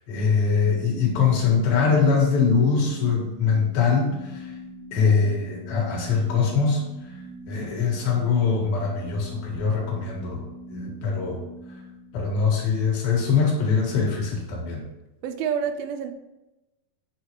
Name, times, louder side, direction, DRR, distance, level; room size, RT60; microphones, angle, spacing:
voice 1, 0.1-4.5 4.9-6.8 7.5-11.3 12.1-14.8, left 5 dB, 75° left, -2 dB, 3.6 m, -23 dB
sound 1, 0.6-12.8, right 1 dB, 5° left, 1.1 m, -42 dB
voice 2, 15.2-16.1, right 7 dB, 85° right, 8 dB, 2.5 m, -27 dB
8.5 x 6.8 x 3.1 m, 1.0 s
omnidirectional pair, 4.2 m